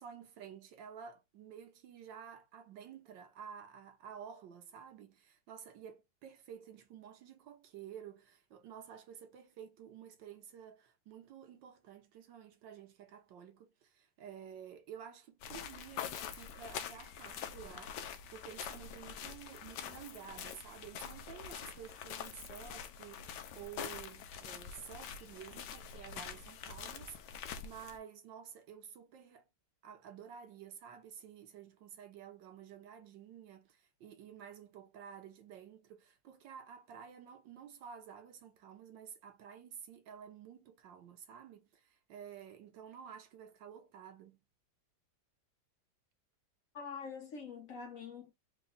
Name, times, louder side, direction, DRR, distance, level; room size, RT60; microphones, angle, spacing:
voice 1, 0.0-29.5 29.8-44.4, right 8 dB, 75° right, 1.5 m, -52 dB
sound 1, 15.4-28.0, left 8 dB, 75° left, 1.2 m, -45 dB
voice 2, 46.7-48.3, left 5 dB, 55° left, 1.1 m, -45 dB
4.0 x 2.3 x 3.8 m
omnidirectional pair, 2.0 m